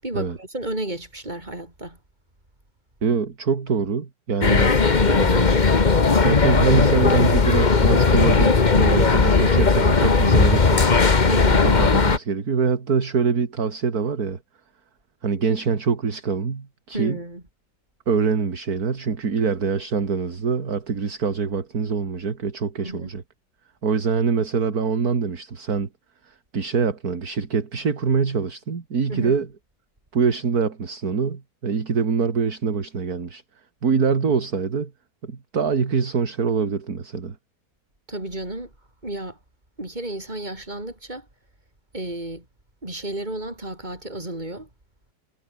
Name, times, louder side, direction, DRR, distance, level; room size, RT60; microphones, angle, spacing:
voice 1, 0.0-2.0 11.2-11.7 16.9-17.4 22.8-23.1 29.1-29.4 38.1-38.7 39.0-39.4 39.8-41.3 41.9-42.5 42.8-44.7, right 1 dB, 25° right, 6.2 m, -32 dB
voice 2, 3.0-5.7 6.0-10.9 11.8-14.4 15.2-17.2 18.1-23.2 23.8-25.9 26.3-29.5 30.1-33.4 33.8-34.9 35.2-37.4, right 5 dB, 60° right, 2.7 m, -24 dB
sound 1, 4.4-12.2, left 4 dB, 30° left, 1.4 m, -17 dB
omnidirectional pair, 1.9 m